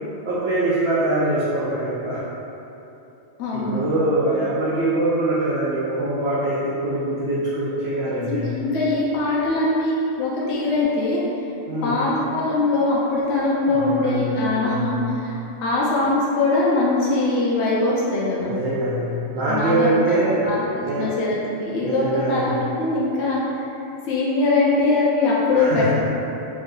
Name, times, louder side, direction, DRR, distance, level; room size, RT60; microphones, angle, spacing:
voice 1, 0.2-2.2 3.5-8.5 11.7-12.0 13.6-14.9 18.5-20.5 20.8-21.2 21.8-22.5 25.5-26.0, right 2 dB, 60° right, -8 dB, 0.7 m, -23 dB
voice 2, 3.4-3.8 8.0-11.2 11.8-15.3 15.6-18.5 19.5-20.6 21.0-23.7 24.0-26.0, left 2 dB, 65° left, -7 dB, 0.8 m, -22 dB
3.0 x 2.6 x 3.7 m, 2.9 s
omnidirectional pair, 1.4 m